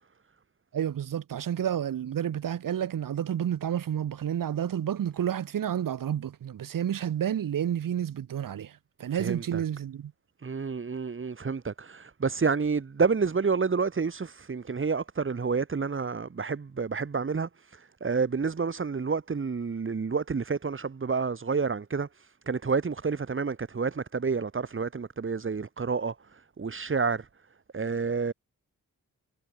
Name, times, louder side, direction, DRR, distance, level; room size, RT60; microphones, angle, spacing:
voice 1, 0.7-10.1, right 9 dB, 90° right, 3.1 m, -30 dB
voice 2, 9.1-9.6 10.4-27.3 27.7-28.3, right 5 dB, 40° right, 4.8 m, -29 dB
wide cardioid pair, 120°, 32 cm